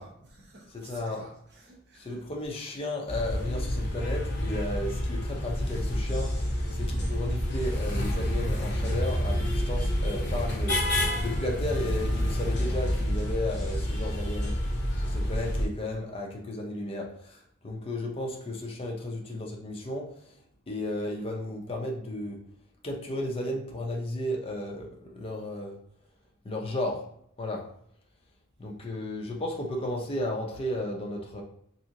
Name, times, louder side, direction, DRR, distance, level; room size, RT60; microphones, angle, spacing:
voice 1, 0.0-2.2, right 2 dB, 55° right, -2 dB, 0.8 m, -53 dB
voice 2, 0.7-1.2 2.0-6.3 6.8-10.8 11.2-14.5 15.0-20.1 20.7-22.4 22.8-25.8 26.4-27.0 27.4-27.6 28.6-31.4, left 1 dB, 30° left, -1 dB, 0.5 m, -34 dB
sound 1, 3.1-15.7, equal, 55° left, 0.8 m, -28 dB
3.5 x 2.8 x 2.7 m, 0.70 s
head